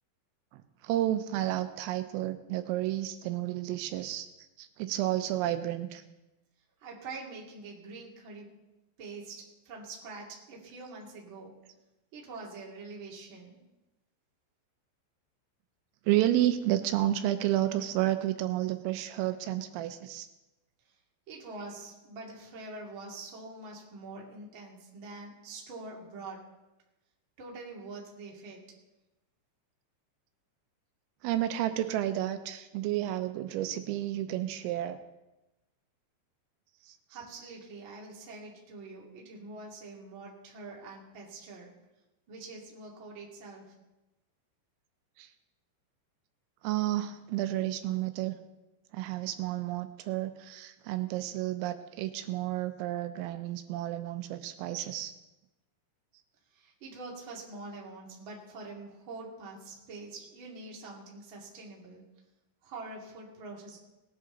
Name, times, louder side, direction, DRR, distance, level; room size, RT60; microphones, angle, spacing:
voice 1, 0.5-4.3 4.6-6.0 16.1-20.3 31.2-35.0 36.9-37.0 45.2-45.3 46.6-48.4 48.9-55.1, right 13 dB, 85° right, 9 dB, 3.4 m, -31 dB
voice 2, 6.8-8.5 9.0-11.5 12.1-13.6 20.8-20.9 21.3-26.4 27.4-28.6 37.1-41.7 42.3-43.7 56.5-62.0 62.6-63.8, right 3 dB, 35° right, -2 dB, 2.3 m, -45 dB
19.5 x 10.5 x 4.0 m, 1.0 s
omnidirectional pair, 5.9 m